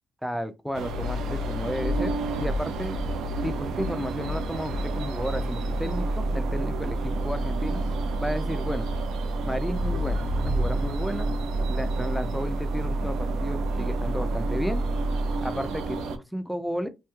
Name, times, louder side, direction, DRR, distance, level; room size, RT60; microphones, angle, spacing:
voice 1, 0.2-3.0 3.4-7.8 8.2-8.9 9.5-11.3 11.7-14.8 15.4-16.9, equal, ahead, 0.3 m, -33 dB
sound 1, 0.7-16.2, right 2 dB, 90° right, 0.4 m, -28 dB
Thunder / Rain, 9.3-14.9, right 3 dB, 55° right, 1.6 m, -38 dB
3.1 x 3.0 x 2.2 m
cardioid pair, 150°, 0 cm